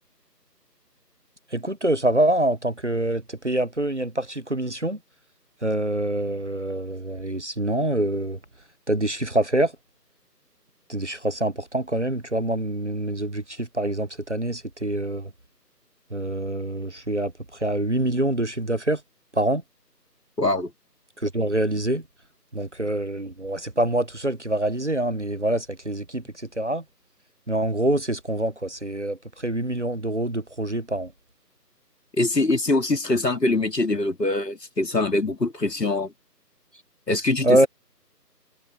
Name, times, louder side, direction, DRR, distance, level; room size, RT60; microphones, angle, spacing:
voice 1, 1.5-5.0 5.6-8.4 8.9-9.7 10.9-15.3 16.1-19.0 19.3-19.6 21.2-22.0 22.5-26.2 26.6-26.8 27.5-31.1 37.4-37.7, right 1 dB, 45° right, 1.0 m, -25 dB
voice 2, 20.4-20.7 32.2-36.1 37.1-37.7, left 2 dB, 75° left, 2.6 m, -23 dB
figure-of-eight pair, 175°, 50 cm